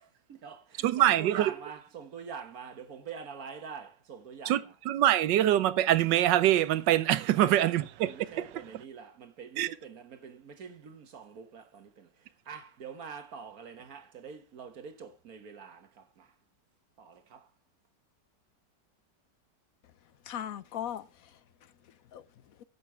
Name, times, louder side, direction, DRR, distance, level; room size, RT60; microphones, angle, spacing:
voice 1, 0.0-4.7 7.4-16.3 17.0-17.5, right 6 dB, 60° right, 1.6 m, -45 dB
voice 2, 0.8-1.5 4.5-8.1 8.4-8.5 9.6-9.7, right 13 dB, 80° right, 1.4 m, -24 dB
voice 3, 20.2-22.6, left 10 dB, 60° left, 1.0 m, -41 dB
11.0 x 8.1 x 4.5 m
omnidirectional pair, 1.9 m